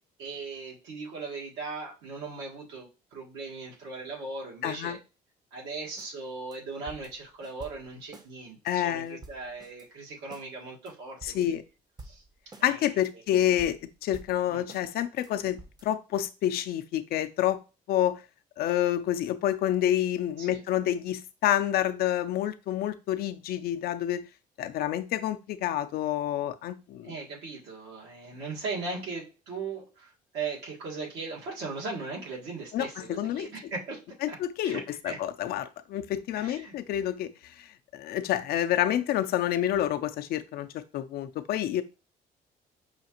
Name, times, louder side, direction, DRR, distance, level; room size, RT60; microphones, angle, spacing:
voice 1, 0.2-5.0 5.5-11.5 12.0-12.2 12.6-12.8 14.5-14.6 20.4-20.6 27.0-34.0 34.3-34.4 34.6-35.2 36.4-36.7, right 4 dB, 85° right, 1.7 m, -38 dB
voice 2, 4.6-5.0 8.6-9.2 11.2-11.6 12.6-17.6 17.9-18.2 18.6-24.3 24.6-27.1 32.7-33.5 34.2-41.8, left 12 dB, 65° left, 0.5 m, -28 dB
sound 1, 6.0-6.1 6.5-6.6 6.9-8.3 8.7-8.8 9.0-9.9 10.3-10.5 10.9-11.0 11.2-11.7 12.0-12.7 13.0-13.1 13.4-14.9 15.2-15.3 15.6-15.9, right 2 dB, 25° right, 0.6 m, -49 dB
5.6 x 2.5 x 2.9 m
cardioid pair, 110°, 17 cm